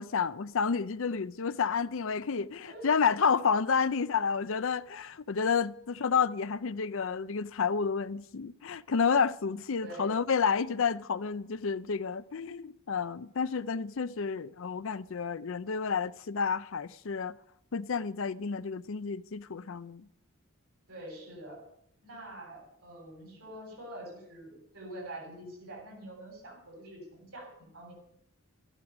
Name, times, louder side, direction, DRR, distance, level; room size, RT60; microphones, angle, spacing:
voice 1, 0.0-17.4 17.7-20.1, left 6 dB, 60° left, 0.5 m, -30 dB
voice 2, 2.4-2.9 9.8-10.2 20.9-21.6 22.0-27.9, right 1 dB, 75° right, 7.7 m, -45 dB
14.0 x 12.0 x 6.0 m
head